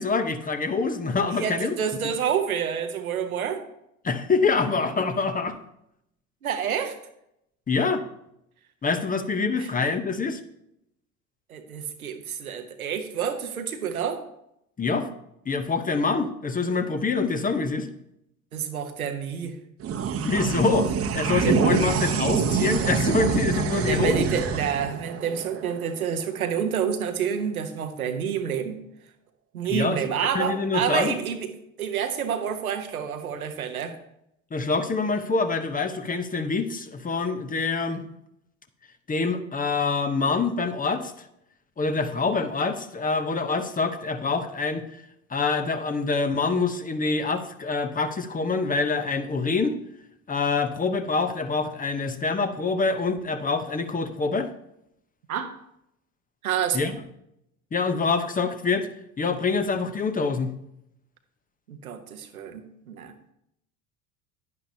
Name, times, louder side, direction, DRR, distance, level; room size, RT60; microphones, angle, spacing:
voice 1, 0.0-1.8 4.0-5.6 7.7-8.0 8.8-10.4 14.8-15.1 15.5-17.9 20.2-24.3 29.7-30.0 30.3-31.2 34.5-38.0 39.1-41.3 41.8-45.0 45.3-49.8 50.3-54.5 56.7-56.9 57.7-58.9 59.2-60.5, left 4 dB, 20° left, 8 dB, 0.9 m, -25 dB
voice 2, 1.3-3.6 6.4-7.0 9.6-9.7 11.5-14.2 18.5-19.5 20.8-20.9 21.4-21.6 23.7-28.8 29.5-31.5 31.8-33.9 55.3-55.5 56.4-56.9 61.7-63.1, right 8 dB, 80° right, 7 dB, 1.0 m, -28 dB
sound 1, 19.8-26.5, right 7 dB, 35° right, 1.0 m, -26 dB
10.5 x 10.0 x 2.8 m, 0.79 s
figure-of-eight pair, 65°, 42 cm